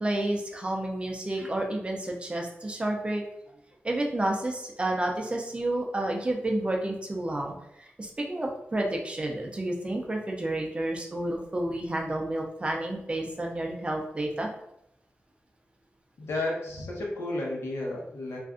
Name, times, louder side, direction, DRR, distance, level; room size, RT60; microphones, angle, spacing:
voice 1, 0.0-3.2 3.8-7.5 8.0-14.5, right 1 dB, 25° right, 1 dB, 0.5 m, -30 dB
voice 2, 16.2-18.4, left 2 dB, 90° left, -3 dB, 0.9 m, -32 dB
2.5 x 2.3 x 3.6 m, 0.78 s
wide cardioid pair, 135°, 4 cm